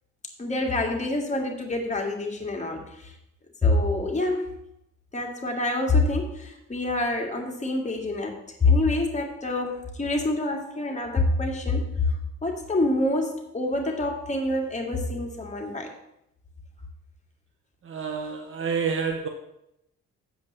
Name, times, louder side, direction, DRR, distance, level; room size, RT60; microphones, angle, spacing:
voice 1, 0.4-3.1 3.6-4.5 5.1-12.1 12.4-15.9, left 2 dB, 25° left, 1 dB, 2.0 m, -26 dB
voice 2, 17.8-19.3, right 5 dB, 45° right, 4 dB, 1.0 m, -28 dB
7.9 x 5.2 x 7.4 m, 0.82 s
cardioid pair, 90°, 30 cm